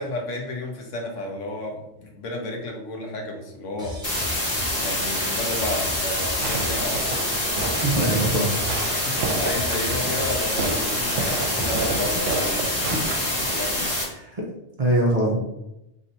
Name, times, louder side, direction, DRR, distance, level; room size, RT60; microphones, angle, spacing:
voice 1, 0.0-4.4 4.7-7.1 7.7-8.2 8.8-13.1 13.3-13.9, left 1 dB, 85° left, 1 dB, 1.2 m, -32 dB
sound 1, 3.8-11.8, left 1 dB, 5° right, 0.7 m, -39 dB
sound 2, 4.0-14.0, left 1 dB, 35° left, 1.1 m, -26 dB
Fireworks, 6.4-13.8, right 4 dB, 80° right, 0.9 m, -31 dB
voice 2, 7.8-8.5 12.9-13.0 13.8-14.5 14.8-15.4, right 1 dB, 45° right, -2 dB, 0.5 m, -23 dB
3.1 x 2.7 x 4.2 m, 0.88 s
omnidirectional pair, 1.2 m